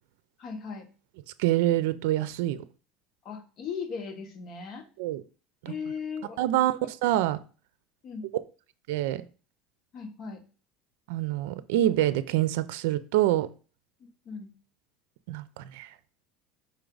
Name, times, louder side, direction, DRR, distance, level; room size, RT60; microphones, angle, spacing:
voice 1, 0.4-0.9 3.2-4.8 5.6-6.7 8.0-8.3 9.9-10.4 14.0-14.5, left 5 dB, 40° left, 1.5 m, -38 dB
voice 2, 1.4-2.6 5.0-5.2 5.6-5.7 6.4-7.4 8.9-9.2 11.1-13.5 15.3-15.9, right 14 dB, 85° right, 0.5 m, -26 dB
5.4 x 4.5 x 3.9 m
supercardioid pair, 130°, 0 cm